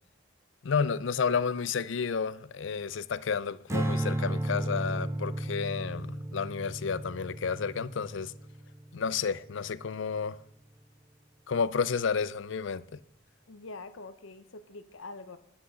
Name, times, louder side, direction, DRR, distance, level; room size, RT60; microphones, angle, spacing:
voice 1, 0.6-8.3 8.9-10.4 11.5-13.0, left 6 dB, 70° left, 0.5 m, -31 dB
Strum, 3.7-10.1, right 1 dB, 15° right, 0.6 m, -34 dB
voice 2, 13.5-15.4, left 3 dB, 90° left, 0.8 m, -45 dB
10.0 x 7.8 x 6.5 m
head